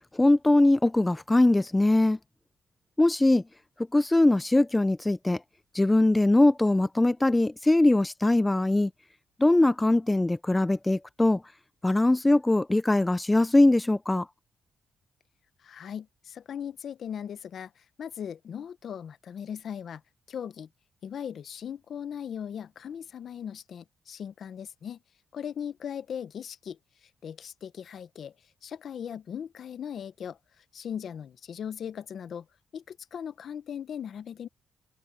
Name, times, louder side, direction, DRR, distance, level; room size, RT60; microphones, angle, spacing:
voice 1, 0.1-2.2 3.0-3.4 3.9-5.4 5.7-8.9 9.4-11.4 11.8-14.3, left 2 dB, 10° left, 0.4 m, -22 dB
voice 2, 15.6-20.0 20.3-20.7 21.0-25.0 25.3-28.3 28.6-32.5 32.7-34.5, left 8 dB, 60° left, 0.8 m, -38 dB
cardioid pair, 115°, 0 cm